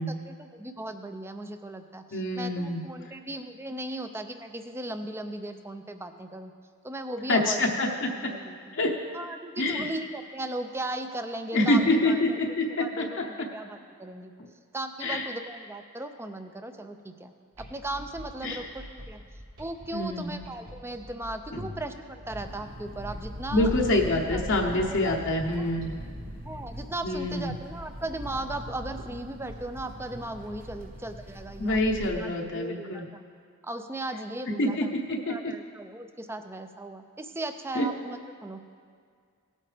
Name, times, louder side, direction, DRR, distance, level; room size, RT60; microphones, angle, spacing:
voice 1, 0.3-6.5 6.8-7.8 8.2-8.7 9.1-12.2 12.8-14.3 14.7-19.2 19.6-24.0 24.3-24.4 24.7-25.2 25.5-25.7 26.4-33.2 33.6-34.9 35.3-38.6, right 1 dB, 10° right, 7 dB, 0.5 m, -37 dB
voice 2, 2.1-2.8 7.3-8.3 8.7-8.9 9.6-9.9 11.5-13.5 15.0-15.3 18.4-18.7 19.9-20.3 21.5-21.7 23.5-26.0 27.0-27.5 31.6-33.0 34.6-35.5 37.7-37.9, left 1 dB, 60° left, 0 dB, 0.9 m, -26 dB
sound 1, 17.5-30.6, equal, 70° right, 3.2 m, -49 dB
sound 2, 22.3-32.2, equal, 40° right, 1.4 m, -40 dB
18.0 x 8.5 x 3.4 m, 2.1 s
head